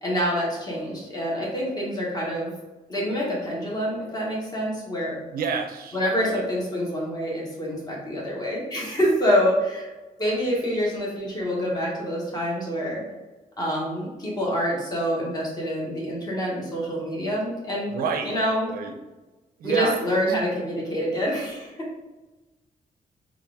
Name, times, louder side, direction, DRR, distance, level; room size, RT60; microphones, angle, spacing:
voice 1, 0.0-2.5 2.9-5.2 5.9-9.9 10.2-13.0 13.6-17.9 18.2-18.7 19.6-21.9, equal, 25° left, -4 dB, 1.2 m, -26 dB
voice 2, 5.3-6.4 17.9-18.3 18.7-18.9 19.6-20.2, right 5 dB, 85° right, 4 dB, 0.5 m, -29 dB
4.1 x 2.5 x 3.5 m, 1.1 s
wide cardioid pair, 155°, 15 cm